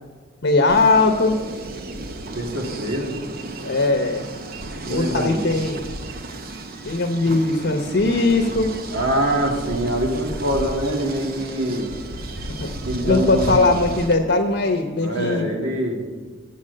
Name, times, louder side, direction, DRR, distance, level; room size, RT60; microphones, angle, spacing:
voice 1, 0.4-1.4 3.6-4.3 4.9-5.8 6.8-8.7 12.6-12.7 13.0-15.5, left 3 dB, 65° left, 4 dB, 0.8 m, -19 dB
sound 1, 0.7-14.1, right 2 dB, 50° right, 0.7 m, -33 dB
voice 2, 2.3-3.1 4.8-5.5 8.9-11.9 12.8-13.8 15.0-16.0, right 1 dB, 75° right, 1 dB, 1.7 m, -24 dB
8.6 x 8.1 x 6.6 m, 1.5 s
head